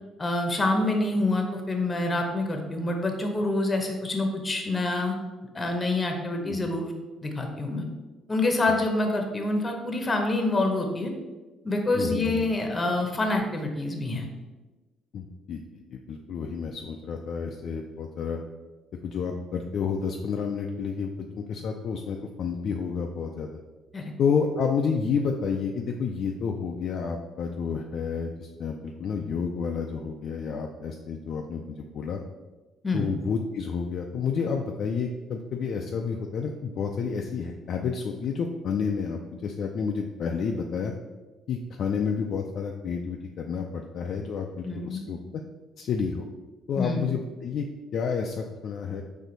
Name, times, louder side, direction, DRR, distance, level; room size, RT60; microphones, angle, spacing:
voice 1, 0.2-5.2 5.5-6.9 7.2-7.8 8.3-11.1 11.6-14.3 23.9-24.1 32.8-33.1 44.6-45.0 46.8-47.1, left 2 dB, 25° left, 3 dB, 0.8 m, -26 dB
voice 2, 11.9-12.4 15.1-18.4 19.0-23.5 24.2-32.2 32.9-40.9 41.5-45.4 45.8-46.3 46.7-47.7 47.9-49.0, left 6 dB, 60° left, 2 dB, 0.3 m, -30 dB
4.3 x 2.7 x 3.9 m, 1.2 s
supercardioid pair, 70°, 0 cm